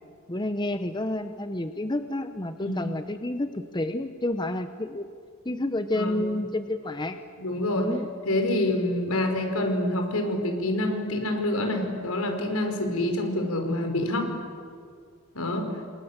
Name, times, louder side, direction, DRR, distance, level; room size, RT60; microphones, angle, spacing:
voice 1, 0.3-5.1 5.4-7.2 7.7-8.1, left 1 dB, 20° left, 9 dB, 0.9 m, -30 dB
voice 2, 7.4-7.9 8.3-14.3 15.4-15.7, left 1 dB, 80° left, 4 dB, 5.1 m, -27 dB
30.0 x 25.5 x 7.4 m, 2.2 s
head